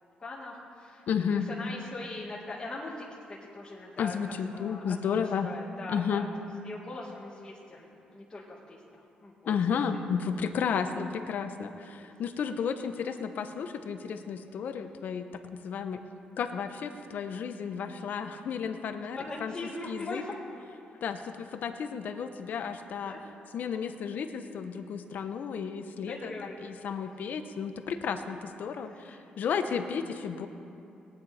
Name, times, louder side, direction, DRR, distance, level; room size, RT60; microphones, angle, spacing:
voice 1, 0.2-6.3 6.6-10.0 12.8-12.9 18.3-18.4 19.2-20.4 23.1-23.2 26.1-26.7 28.9-29.2 29.7-30.0, left 2 dB, 25° left, -6 dB, 1.9 m, -41 dB
voice 2, 1.1-1.5 4.0-5.5 5.9-6.3 9.5-16.0 16.4-19.5 19.9-20.2 21.0-23.1 23.5-26.3 26.6-30.5, left 6 dB, 65° left, 8 dB, 0.9 m, -33 dB
19.0 x 9.7 x 4.3 m, 2.6 s
cardioid pair, 100°, 3 cm